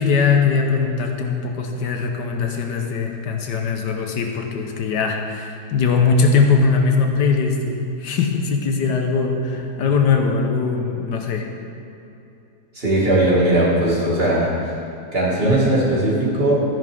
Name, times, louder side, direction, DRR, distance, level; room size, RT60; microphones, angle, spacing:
voice 1, 0.0-11.4, left 5 dB, 75° left, 3 dB, 1.5 m, -20 dB
voice 2, 12.7-14.7 15.1-16.6, right 1 dB, 35° right, -6 dB, 2.5 m, -18 dB
13.0 x 11.0 x 3.6 m, 2.7 s
omnidirectional pair, 1.9 m